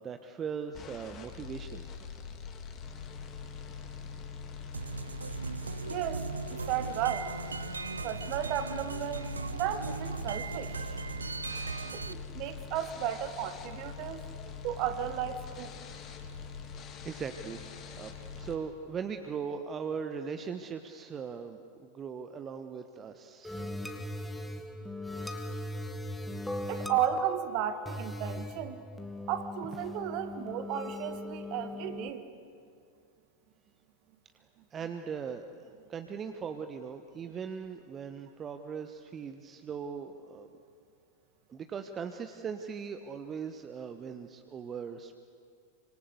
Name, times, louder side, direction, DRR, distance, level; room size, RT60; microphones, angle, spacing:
voice 1, 0.0-1.9 17.0-17.6 17.9-23.6 34.7-35.5 35.9-40.5 41.5-45.2, right 6 dB, 25° right, 7 dB, 1.1 m, -39 dB
sound 1, 0.7-18.5, left 6 dB, 30° left, 3.0 m, -43 dB
sound 2, 4.7-12.1, right 5 dB, 75° right, 0.6 m, -38 dB
voice 2, 5.9-7.3 8.0-11.0 11.9-14.2 14.6-15.7 26.7-28.8 29.3-32.3, right 10 dB, 40° right, 10 dB, 1.9 m, -34 dB
sound 3, 23.4-32.1, left 1 dB, 5° left, 1.8 m, -39 dB
26.5 x 25.0 x 8.1 m, 2.3 s
figure-of-eight pair, 90°, 0 cm